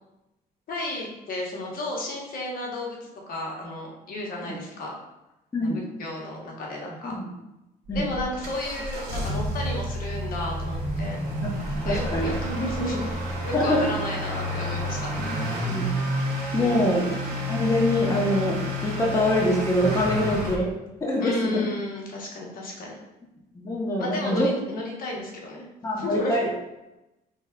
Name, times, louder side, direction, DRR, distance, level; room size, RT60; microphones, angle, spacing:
voice 1, 0.7-5.0 5.6-5.7 6.0-7.1 7.9-11.2 11.8-13.1 13.4-15.1 15.7-15.8 16.6-16.9 20.1-20.5 21.2-23.0 24.0-26.4, left 1 dB, 55° left, -2 dB, 1.1 m, -33 dB
voice 2, 5.5-5.8 7.0-7.3 7.9-8.1 11.4-11.5 11.8-12.3 13.5-13.9 15.2-15.4 15.6-15.9 16.5-17.1 17.5-20.7 21.0-21.7 23.6-24.5 25.8-26.5, left 1 dB, 20° left, -3 dB, 0.8 m, -24 dB
Motor vehicle (road) / Accelerating revving vroom, 7.9-20.6, equal, 85° right, 1.3 m, -30 dB
5.2 x 3.3 x 2.3 m, 0.96 s
cardioid pair, 110°, 17 cm